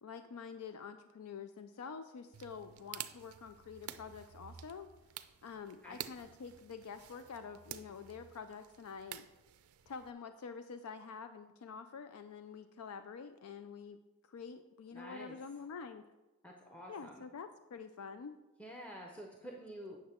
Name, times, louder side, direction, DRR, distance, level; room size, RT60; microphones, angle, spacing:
voice 1, 0.0-4.9 5.4-9.3 9.9-14.0 14.3-16.0 16.9-18.3, left 5 dB, 80° left, 10 dB, 0.4 m, -47 dB
sound 1, 2.3-10.1, right 11 dB, 80° right, 0.5 m, -50 dB
voice 2, 14.9-15.4 16.4-17.2 18.6-20.0, equal, 5° left, 0 dB, 0.6 m, -49 dB
8.7 x 6.4 x 4.3 m, 1.1 s
head